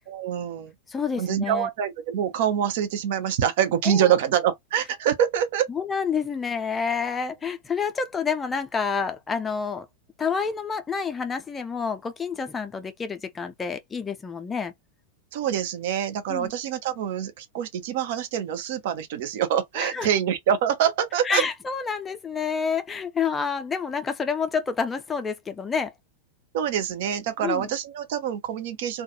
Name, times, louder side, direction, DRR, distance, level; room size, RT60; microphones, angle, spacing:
voice 1, 0.1-0.7 1.2-5.7 15.3-21.4 26.5-29.0, right 9 dB, 50° right, 0.5 m, -25 dB
voice 2, 0.9-1.7 3.8-4.1 5.7-9.9 10.2-14.7 16.3-16.5 19.8-20.1 21.2-25.9 27.4-27.7, left 5 dB, 15° left, 0.5 m, -28 dB
2.3 x 2.3 x 2.8 m
figure-of-eight pair, 90°, 0 cm